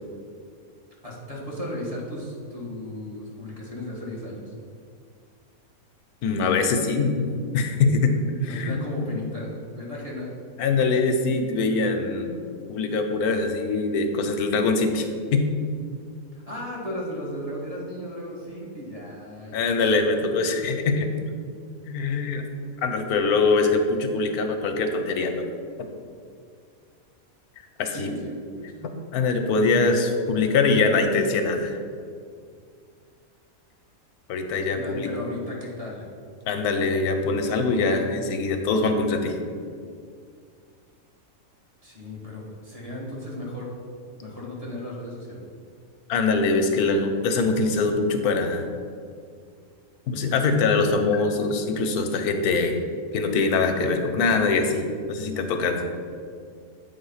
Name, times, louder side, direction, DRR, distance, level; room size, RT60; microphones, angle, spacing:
voice 1, 1.0-4.5 8.5-10.4 11.8-11.9 16.3-19.6 27.9-28.9 34.7-36.1 41.8-43.7 44.2-45.4, left 1 dB, 25° right, -5 dB, 1.5 m, -35 dB
voice 2, 6.2-7.3 7.5-8.1 8.4-9.2 10.6-12.3 12.7-15.4 19.5-21.1 21.9-22.4 22.8-25.5 27.6-28.1 29.1-31.8 34.3-35.1 36.5-39.4 46.1-48.7 50.1-52.8 53.1-55.8, left 3 dB, 90° left, 5 dB, 1.2 m, -23 dB
8.1 x 3.7 x 5.6 m, 2.2 s
omnidirectional pair, 1.5 m